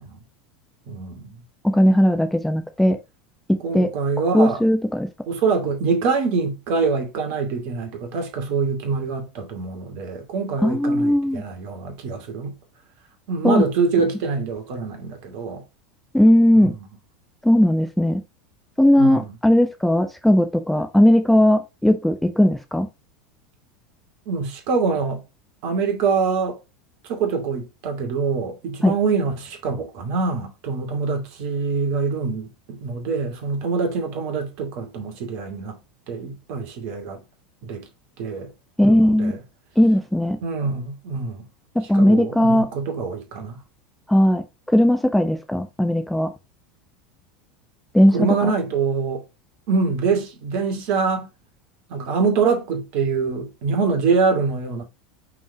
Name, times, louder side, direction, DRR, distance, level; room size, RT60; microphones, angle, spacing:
voice 1, 0.9-1.4 3.6-4.6 5.3-12.6 13.3-15.6 16.6-16.7 19.0-19.3 24.3-25.2 25.6-26.6 27.0-35.8 36.1-37.2 37.6-37.9 38.2-38.5 38.9-39.4 40.4-41.5 41.9-43.6 48.1-49.2 49.7-51.3 51.9-54.8, right 5 dB, 55° right, 2.4 m, -24 dB
voice 2, 1.6-3.0 3.7-3.9 4.3-5.1 10.6-11.4 13.4-13.6 16.1-16.7 17.4-18.2 18.8-22.9 28.8-28.9 38.8-39.3 39.8-40.4 41.7-42.7 44.1-44.4 44.7-46.3 47.9-48.1, left 1 dB, 5° left, 0.9 m, -17 dB
5.9 x 4.6 x 3.6 m
figure-of-eight pair, 80°, 4 cm